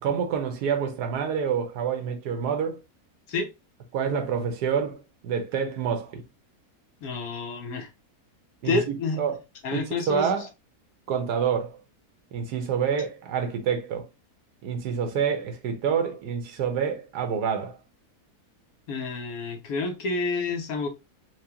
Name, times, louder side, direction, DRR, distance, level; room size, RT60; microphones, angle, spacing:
voice 1, 0.0-2.8 3.9-6.2 8.6-9.4 9.7-10.5 11.1-11.8 12.3-14.1 14.6-17.8, right 7 dB, 85° right, 1.4 m, -27 dB
voice 2, 7.0-7.9 8.6-9.2 9.6-10.3 18.9-20.9, left 3 dB, 65° left, 1.3 m, -29 dB
4.6 x 2.2 x 2.8 m
omnidirectional pair, 1.7 m